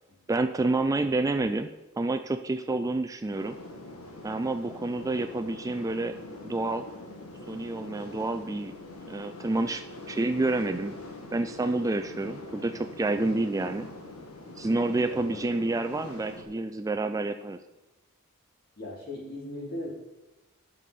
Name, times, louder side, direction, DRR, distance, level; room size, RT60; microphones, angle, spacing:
voice 1, 0.3-1.7 2.0-3.5 4.2-6.1 6.4-6.8 7.5-8.7 9.1-10.9 11.3-13.9 14.6-17.6, right 2 dB, 15° right, 8 dB, 0.3 m, -28 dB
sound 1, 3.3-16.4, left 2 dB, 70° left, 1.6 m, -43 dB
voice 2, 15.1-15.4 18.8-19.9, left 1 dB, 45° left, -6 dB, 3.9 m, -38 dB
9.3 x 6.9 x 5.2 m, 1.0 s
head